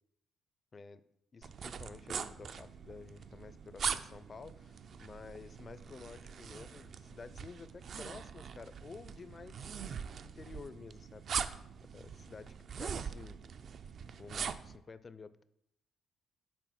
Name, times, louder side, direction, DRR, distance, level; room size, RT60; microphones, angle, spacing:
voice 1, 1.3-13.4 14.2-15.4, left 4 dB, 35° left, 14 dB, 0.4 m, -51 dB
sound 1, 1.4-14.8, right 7 dB, 55° right, 0.4 m, -42 dB
6.1 x 4.2 x 5.8 m, 0.76 s
cardioid pair, 90°, 0 cm